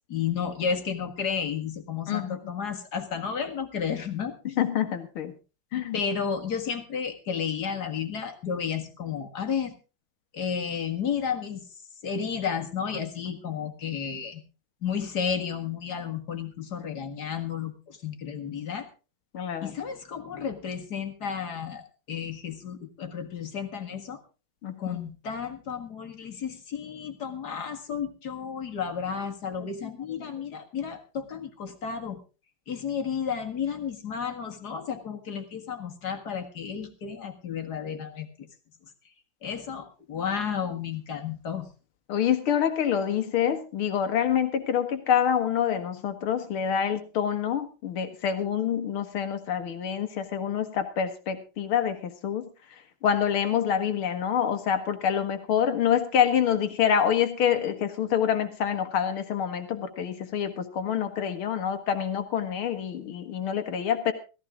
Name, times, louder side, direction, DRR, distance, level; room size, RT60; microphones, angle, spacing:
voice 1, 0.1-4.3 5.7-9.7 10.3-11.6 12.0-14.4 14.8-18.9 19.6-24.2 24.8-32.2 32.7-38.5 39.4-41.7, left 7 dB, 50° left, 5 dB, 2.2 m, -32 dB
voice 2, 2.1-2.4 4.6-5.3 5.7-6.0 13.3-13.4 19.3-19.7 24.6-25.0 42.1-52.5 53.0-64.1, left 8 dB, 80° left, 9 dB, 2.4 m, -26 dB
16.0 x 15.0 x 3.7 m, 0.33 s
omnidirectional pair, 2.3 m